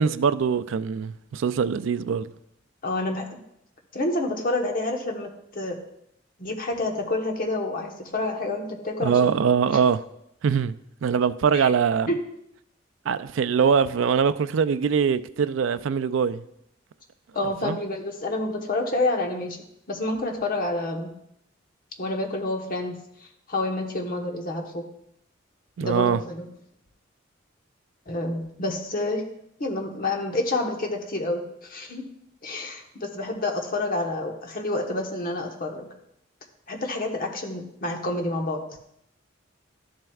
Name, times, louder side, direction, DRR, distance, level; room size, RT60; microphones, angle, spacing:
voice 1, 0.0-2.3 9.0-10.0 10.4-10.8 11.0-12.1 13.1-16.4 17.6-17.8 25.8-26.2, right 6 dB, 80° right, 0.4 m, -22 dB
voice 2, 2.8-3.4 3.9-5.8 6.4-9.3 11.5-11.7 12.1-12.2 17.3-19.6 19.9-21.1 22.0-24.8 25.8-26.5 28.1-29.2 29.6-32.1 32.4-35.9 36.7-38.6, left 2 dB, 45° left, 1.1 m, -28 dB
12.5 x 7.6 x 2.4 m
head